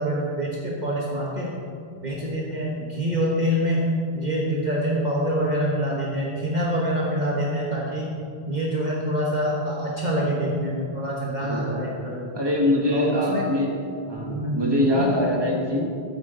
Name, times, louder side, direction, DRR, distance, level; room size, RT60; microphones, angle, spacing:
voice 1, 0.0-1.5 2.0-3.9 4.1-8.1 8.5-12.3 12.9-13.4 14.2-14.6 14.9-15.1, equal, 45° right, -4 dB, 1.4 m, -26 dB
voice 2, 11.4-11.8 12.3-13.7 14.0-15.8, left 1 dB, 25° right, -1 dB, 1.6 m, -23 dB
13.5 x 8.7 x 3.9 m, 2.4 s
omnidirectional pair, 1.1 m